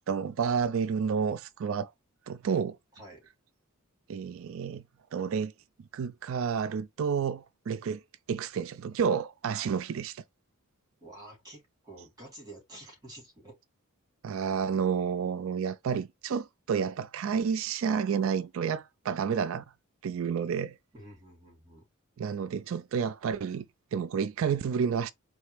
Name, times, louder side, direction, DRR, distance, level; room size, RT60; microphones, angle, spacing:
voice 1, 0.1-1.9 2.3-2.8 4.1-4.8 5.1-5.5 5.9-8.0 8.3-10.2 14.2-19.6 20.0-20.8 22.2-23.7 23.9-25.1, right 6 dB, 65° right, 0.3 m, -30 dB
voice 2, 11.0-13.6 20.9-21.8, right 1 dB, 15° right, 3.0 m, -49 dB
4.3 x 3.2 x 3.3 m
head